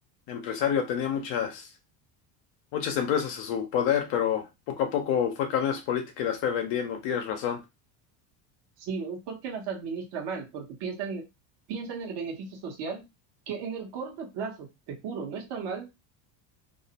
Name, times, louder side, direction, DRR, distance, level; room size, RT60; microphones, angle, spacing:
voice 1, 0.3-1.7 2.7-7.6, left 8 dB, 65° left, 0.7 m, -28 dB
voice 2, 8.8-11.2 11.7-13.1 13.5-15.9, right 5 dB, 60° right, 1.0 m, -35 dB
2.4 x 2.0 x 2.8 m
supercardioid pair, 85°, 48 cm